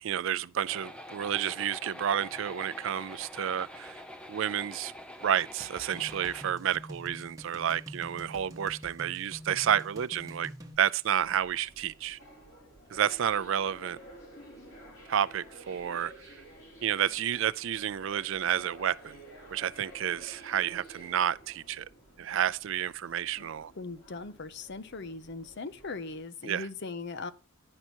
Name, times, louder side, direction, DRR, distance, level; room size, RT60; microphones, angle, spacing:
voice 1, 0.0-4.0 4.3-4.9 5.2-10.5 10.8-12.2 12.9-14.0 15.1-16.4 16.8-19.2 19.5-21.9 22.2-23.7 26.4-26.7, right 9 dB, 60° right, 0.4 m, -30 dB
sound 1, 0.7-6.5, left 1 dB, 5° left, 0.7 m, -45 dB
sound 2, 5.6-10.8, equal, 15° right, 1.1 m, -46 dB
sound 3, 11.2-26.2, right 1 dB, 70° left, 5.2 m, -52 dB
voice 2, 23.8-27.3, left 3 dB, 50° left, 0.7 m, -39 dB
11.0 x 5.6 x 4.4 m
head